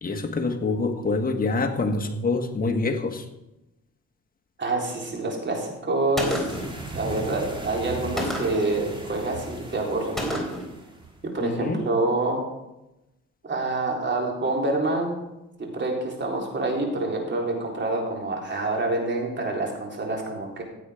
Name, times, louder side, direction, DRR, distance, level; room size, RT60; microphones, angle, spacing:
voice 1, 0.0-3.2 11.4-11.8, left 3 dB, 30° left, 4 dB, 1.6 m, -26 dB
voice 2, 4.6-6.6 6.9-10.4 11.3-12.4 13.4-15.2 15.6-20.6, right 2 dB, 40° right, 0 dB, 4.0 m, -27 dB
Gunshot gunfire, 6.2-6.8 8.2-8.7 10.2-10.7, equal, ahead, 4.0 m, -29 dB
sound 1, 6.5-11.3, right 2 dB, 15° right, 2.8 m, -38 dB
16.0 x 8.3 x 5.2 m, 0.95 s
cardioid pair, 90°, 30 cm